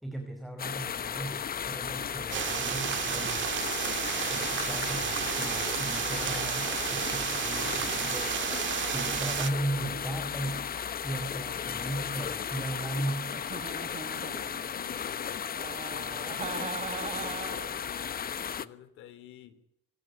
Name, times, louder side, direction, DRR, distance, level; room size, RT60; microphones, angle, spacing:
voice 1, 0.0-3.6 4.3-8.5 8.9-10.7 11.0-13.8 14.3-14.6, right 1 dB, ahead, 5 dB, 5.0 m, -37 dB
sound 1, 0.6-18.7, left 8 dB, 50° left, 1.1 m, -35 dB
sound 2, 2.3-9.5, right 11 dB, 70° right, 1.7 m, -32 dB
Giggle, 13.3-14.8 15.5-17.8, right 6 dB, 35° right, 1.4 m, -40 dB
voice 2, 14.5-15.5 15.9-19.6, left 10 dB, 90° left, 14 dB, 3.1 m, -49 dB
25.0 x 16.0 x 9.7 m, 0.80 s
cardioid pair, 90°, 20 cm